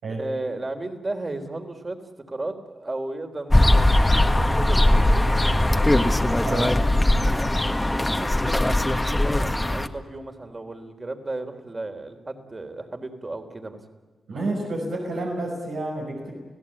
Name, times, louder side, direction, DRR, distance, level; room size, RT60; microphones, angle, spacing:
voice 1, 0.1-2.0 2.3-5.2 7.2-7.5 7.9-13.8, right 2 dB, 30° right, 6 dB, 3.6 m, -34 dB
sound 1, 3.5-9.9, left 1 dB, 15° left, 1.6 m, -20 dB
voice 2, 6.4-6.7 14.3-16.3, right 2 dB, 80° right, -3 dB, 6.2 m, -29 dB
29.5 x 16.5 x 8.8 m, 1.3 s
cardioid pair, 60°, 0 cm